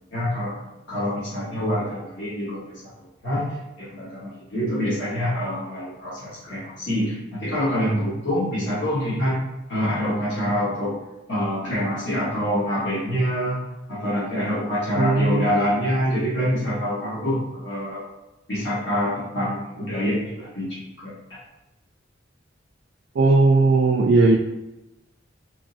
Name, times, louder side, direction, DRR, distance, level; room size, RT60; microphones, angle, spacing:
voice 1, 0.1-3.4 3.8-9.4 9.7-10.9 11.3-13.6 13.9-18.0 18.5-21.1, equal, 70° left, -10 dB, 1.4 m, -26 dB
voice 2, 15.0-15.5 23.2-24.4, right 3 dB, 60° right, 0 dB, 0.3 m, -17 dB
3.6 x 3.1 x 2.7 m, 1.0 s
head